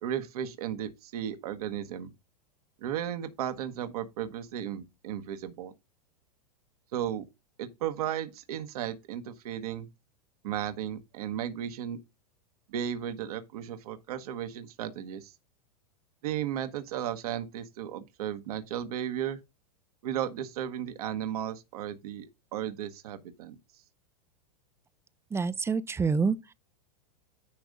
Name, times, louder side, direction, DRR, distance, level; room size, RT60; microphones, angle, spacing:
voice 1, 0.0-2.1 2.8-5.7 6.9-7.2 7.6-9.9 10.4-12.0 12.7-15.3 16.2-19.4 20.0-22.3 22.5-23.5, right 10 dB, 70° right, 1.3 m, -35 dB
voice 2, 25.3-26.5, right 5 dB, 15° right, 0.5 m, -27 dB
10.5 x 3.5 x 5.2 m
hypercardioid pair, 105°, 20 cm